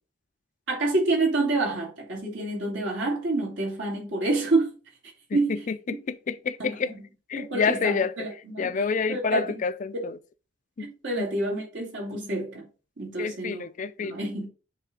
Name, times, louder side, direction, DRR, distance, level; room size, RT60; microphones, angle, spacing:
voice 1, 0.7-4.8 5.3-5.6 5.9-6.0 6.6-7.0 7.4-8.7 9.1-9.6 9.9-10.1 10.8-12.7 13.0-13.6 14.0-14.5, right 2 dB, 75° right, 2.4 m, -28 dB
voice 2, 5.3-6.9 7.3-8.1 8.6-10.2 10.8-10.9 11.2-11.3 13.2-14.2, left 5 dB, 40° left, 0.4 m, -28 dB
8.2 x 3.3 x 3.8 m
head